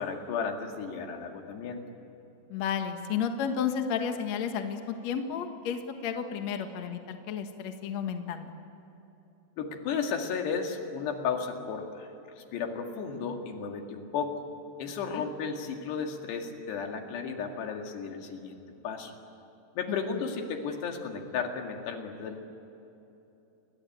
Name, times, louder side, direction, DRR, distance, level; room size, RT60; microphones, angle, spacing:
voice 1, 0.0-1.8 9.6-12.1 12.4-14.4 14.8-19.1 19.8-22.4, left 6 dB, 75° left, 3 dB, 4.2 m, -34 dB
voice 2, 2.5-8.5 15.1-15.2 19.9-20.2, left 7 dB, 55° left, 6 dB, 2.0 m, -32 dB
30.0 x 22.5 x 8.8 m, 2.9 s
omnidirectional pair, 5.0 m